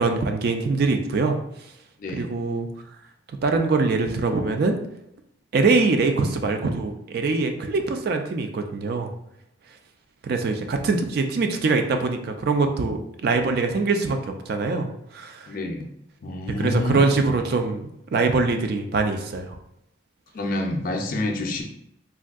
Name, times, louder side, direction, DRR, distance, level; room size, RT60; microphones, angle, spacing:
voice 1, 0.0-1.4 2.2-2.7 3.4-4.8 5.5-9.1 10.2-15.5 16.6-19.6, right 3 dB, 50° right, 5 dB, 0.3 m, -23 dB
voice 2, 2.0-2.3 15.5-15.9 16.2-17.0 20.3-21.6, left 2 dB, 45° left, 2 dB, 0.4 m, -27 dB
3.4 x 2.6 x 2.3 m, 0.77 s
head